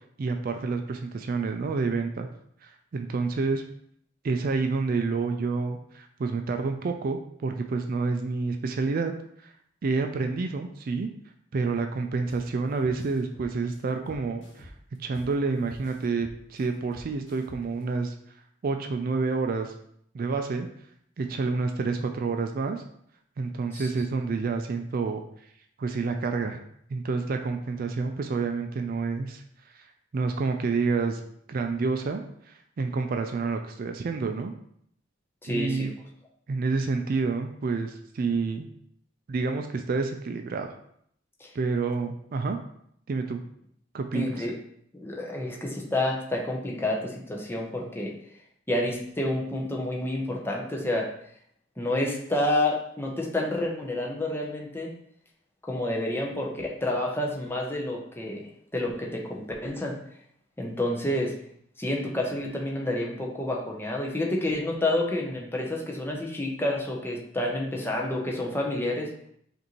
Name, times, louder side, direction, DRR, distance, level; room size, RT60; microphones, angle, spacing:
voice 1, 0.2-2.3 2.6-3.6 4.2-9.1 9.4-9.5 9.8-11.1 11.5-14.7 15.0-18.1 18.6-19.7 20.1-20.7 21.2-22.8 23.4-25.2 25.8-26.6 26.9-29.4 29.7-29.9 30.1-31.2 31.5-32.2 32.5-34.5 35.5-35.9 36.5-38.7 39.3-40.7 41.5-42.6 43.1-43.4 43.9-44.4, right 4 dB, 50° right, 5 dB, 0.4 m, -28 dB
sound 1, 12.3-12.5 12.8-15.3 15.7-17.8, equal, 70° left, 1.1 m, -48 dB
voice 2, 35.4-35.9 44.1-44.5 44.9-48.1 48.7-51.1 51.8-54.9 55.7-58.4 58.7-60.0 60.6-61.3 61.8-69.1, left 1 dB, 10° left, -1 dB, 0.6 m, -29 dB
5.2 x 2.6 x 3.0 m, 0.69 s
head